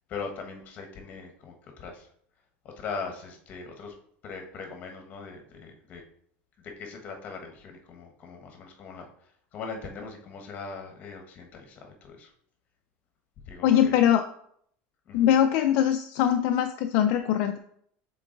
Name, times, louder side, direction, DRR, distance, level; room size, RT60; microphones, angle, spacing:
voice 1, 0.1-2.1 2.6-3.9 4.2-6.0 6.6-12.3 13.5-14.0 15.1-15.3, left 4 dB, 30° left, 3 dB, 1.2 m, -40 dB
voice 2, 13.6-14.2 15.1-17.6, left 10 dB, 55° left, 5 dB, 0.4 m, -22 dB
6.7 x 3.9 x 3.9 m, 0.64 s
cardioid pair, 165°, 5 cm